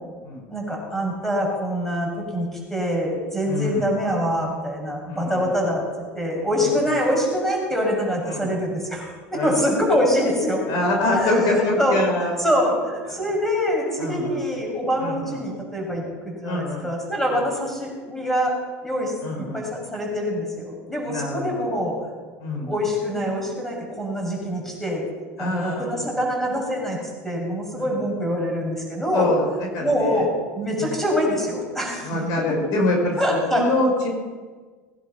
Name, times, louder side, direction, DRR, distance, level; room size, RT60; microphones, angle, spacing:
voice 1, 0.5-5.8 6.1-10.6 11.1-18.6 18.8-22.0 22.5-25.0 25.4-27.0 27.2-29.3 29.8-30.3 30.6-32.2 33.2-33.7, equal, 5° left, -1 dB, 6.9 m, -25 dB
voice 2, 3.5-3.8 5.1-5.5 8.3-8.5 9.3-9.5 10.7-12.4 14.0-14.4 15.0-15.3 16.4-16.8 19.2-19.6 21.1-21.6 22.4-22.7 25.4-26.0 27.8-27.9 29.1-29.4 29.7-30.2 32.0-34.1, left 2 dB, 60° left, 1 dB, 5.7 m, -25 dB
21.0 x 11.0 x 6.0 m, 1.4 s
hypercardioid pair, 100°, 8 cm